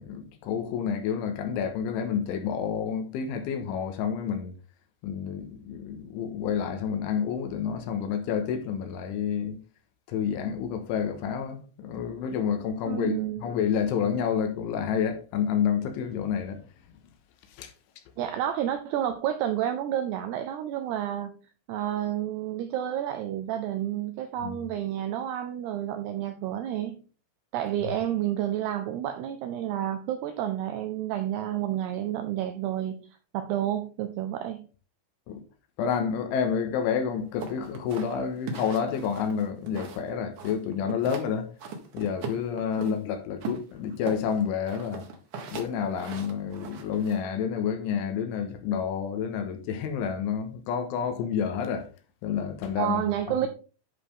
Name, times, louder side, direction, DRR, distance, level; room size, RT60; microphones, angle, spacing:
voice 1, 0.0-4.5 5.0-9.6 10.1-16.6 17.5-17.7 24.4-24.6 35.3-35.4 35.8-41.5 41.9-45.1 45.5-51.9 52.2-53.0, left 7 dB, 85° left, 3.6 m, -29 dB
voice 2, 12.9-13.4 18.2-21.4 21.7-27.0 27.5-33.0 33.3-34.7 42.8-43.0 52.8-53.5, right 11 dB, 85° right, 2.3 m, -30 dB
sound 1, 37.4-40.1 40.4-41.3 41.6-43.0 43.4-47.2, right 4 dB, 60° right, 2.2 m, -39 dB
10.5 x 5.0 x 3.7 m
omnidirectional pair, 5.5 m